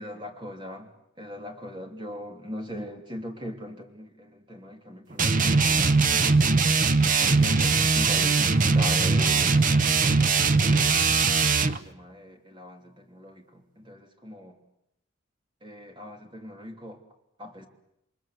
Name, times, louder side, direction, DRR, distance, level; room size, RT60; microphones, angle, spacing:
voice 1, 0.0-9.6 10.0-14.6 15.6-17.0 17.4-17.7, equal, 20° right, 3 dB, 3.1 m, -41 dB
sound 1, 5.2-11.8, right 4 dB, 40° right, 0.9 m, -21 dB
29.0 x 23.0 x 7.9 m, 0.82 s
head